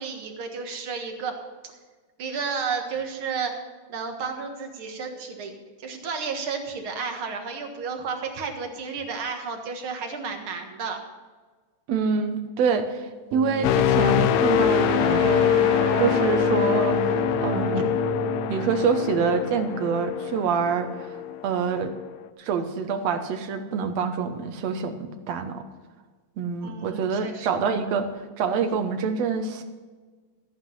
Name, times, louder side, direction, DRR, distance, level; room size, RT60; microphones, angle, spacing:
voice 1, 0.0-1.3 1.6-1.7 2.2-3.5 3.9-11.0 17.8-17.9 26.6-27.5, right 5 dB, 50° right, 4 dB, 2.1 m, -32 dB
voice 2, 11.9-13.1 13.3-15.6 16.0-17.0 17.4-17.9 18.5-21.1 21.4-21.9 22.4-25.6 26.4-28.1 28.4-29.6, right 6 dB, 65° right, 7 dB, 2.1 m, -26 dB
sound 1, 13.3-20.0, right 9 dB, 90° right, 1.2 m, -31 dB
sound 2, 13.6-21.5 21.9-22.2, left 12 dB, 80° left, 1.8 m, -24 dB
14.5 x 9.5 x 5.6 m, 1.4 s
omnidirectional pair, 3.5 m